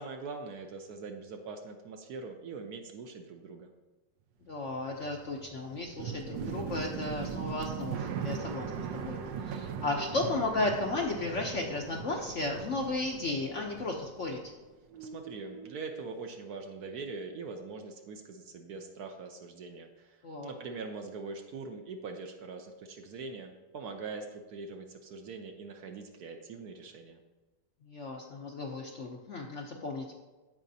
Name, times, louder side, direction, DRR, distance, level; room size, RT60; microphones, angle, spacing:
voice 1, 0.0-3.7 15.0-27.2, right 4 dB, 65° right, 5 dB, 1.1 m, -42 dB
voice 2, 4.5-9.2 9.4-14.4 20.2-20.5 27.9-30.1, left 2 dB, 55° left, 1 dB, 0.8 m, -34 dB
sound 1, 4.5-14.7 14.9-15.8, right 7 dB, 85° right, 1.3 m, -40 dB
15.0 x 5.0 x 2.7 m, 1.2 s
omnidirectional pair, 2.0 m